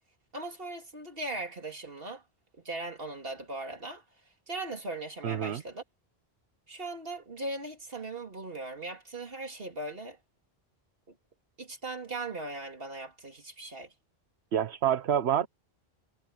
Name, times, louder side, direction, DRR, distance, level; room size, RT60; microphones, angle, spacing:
voice 1, 0.3-2.2 2.6-4.0 4.5-5.8 6.7-10.2 11.1-11.2 11.6-13.9, right 2 dB, 60° right, 3.0 m, -39 dB
voice 2, 5.2-5.6 14.5-15.5, right 9 dB, 75° right, 1.1 m, -27 dB
omnidirectional pair, 1.1 m